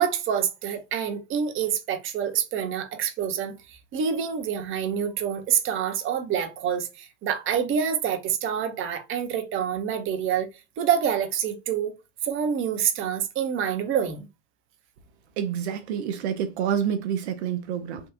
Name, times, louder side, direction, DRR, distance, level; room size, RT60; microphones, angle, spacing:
voice 1, 0.0-10.5 10.8-11.9 12.2-14.3, right 8 dB, 35° right, 0.8 m, -27 dB
voice 2, 15.4-18.0, right 8 dB, 65° right, 0.6 m, -28 dB
3.5 x 2.4 x 2.8 m
hypercardioid pair, 90°, 36 cm